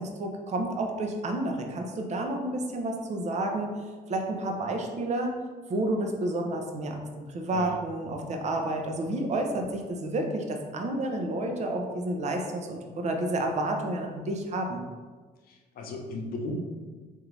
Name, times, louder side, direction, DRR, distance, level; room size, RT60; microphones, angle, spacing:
voice 1, 0.0-3.7 4.1-5.4 5.7-14.8, right 1 dB, 40° right, 3 dB, 0.7 m, -30 dB
voice 2, 15.5-16.5, left 3 dB, 60° left, 1 dB, 0.8 m, -37 dB
3.8 x 2.7 x 4.6 m, 1.4 s
cardioid pair, 110°, 17 cm